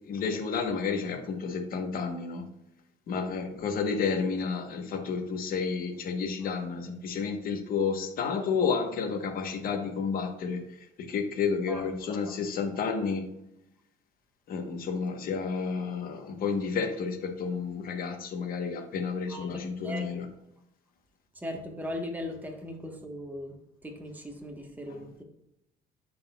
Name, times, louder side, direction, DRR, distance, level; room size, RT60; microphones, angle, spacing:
voice 1, 0.1-2.4 3.1-10.6 11.0-13.2 14.5-20.3, left 5 dB, 60° left, 6 dB, 1.0 m, -31 dB
voice 2, 11.7-12.3 19.3-20.2 21.3-23.6 23.8-25.2, left 1 dB, 10° right, 2 dB, 1.1 m, -39 dB
10.5 x 4.1 x 2.3 m, 0.83 s
cardioid pair, 110°, 17 cm